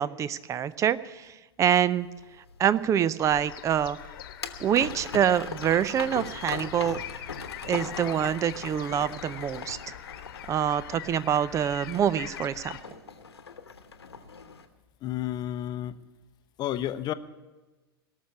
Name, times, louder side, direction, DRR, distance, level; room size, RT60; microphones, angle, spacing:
voice 1, 0.0-2.1 2.6-4.0 4.6-7.0 7.6-10.0 10.5-12.8, right 9 dB, 25° right, 18 dB, 0.5 m, -26 dB
sound 1, 1.7-14.7, left 5 dB, 80° left, 1.1 m, -41 dB
sound 2, 3.2-12.8, left 11 dB, 60° left, 1.2 m, -43 dB
voice 2, 15.0-15.9 16.6-17.1, left 12 dB, 30° left, 12 dB, 0.7 m, -31 dB
18.0 x 6.6 x 8.5 m, 1.2 s
figure-of-eight pair, 95°, 13 cm